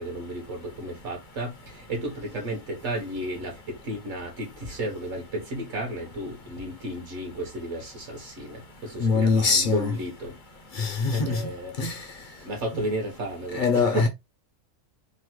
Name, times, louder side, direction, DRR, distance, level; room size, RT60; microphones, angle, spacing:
voice 1, 0.0-10.3 11.1-11.7 12.4-14.1, right 1 dB, 60° right, 1.1 m, -33 dB
voice 2, 9.0-9.9 10.7-11.4 11.8-12.0 13.5-14.1, left 4 dB, 60° left, 0.5 m, -23 dB
3.1 x 2.1 x 2.9 m
omnidirectional pair, 1.4 m